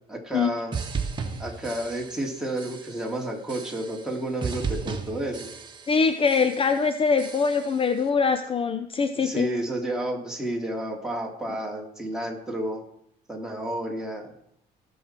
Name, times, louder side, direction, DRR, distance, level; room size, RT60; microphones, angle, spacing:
voice 1, 0.1-0.7 1.4-5.5 9.1-12.8 13.3-14.3, right 1 dB, 5° right, -1 dB, 2.8 m, -31 dB
sound 1, 0.7-2.3 2.6-3.1 3.5-4.1 4.4-6.0 6.3-6.8 7.2-7.8, right 5 dB, 25° right, 1.6 m, -34 dB
voice 2, 5.9-9.5, left 5 dB, 35° left, 9 dB, 0.7 m, -23 dB
17.0 x 6.4 x 4.4 m, 0.73 s
cardioid pair, 110°, 17 cm